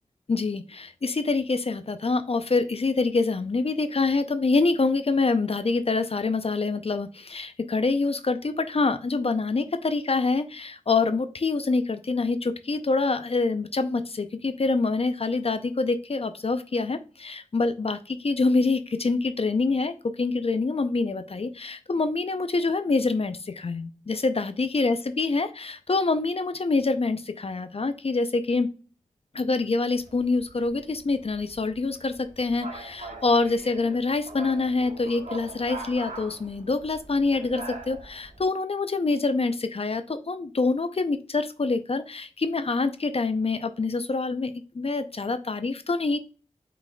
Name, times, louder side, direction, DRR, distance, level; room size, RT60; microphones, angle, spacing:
voice 1, 0.3-28.7 29.3-46.2, left 3 dB, 50° left, 10 dB, 0.5 m, -26 dB
sound 1, 30.0-38.4, right 2 dB, 70° right, 1.2 m, -42 dB
5.8 x 4.0 x 2.2 m, 0.37 s
wide cardioid pair, 65°, 13 cm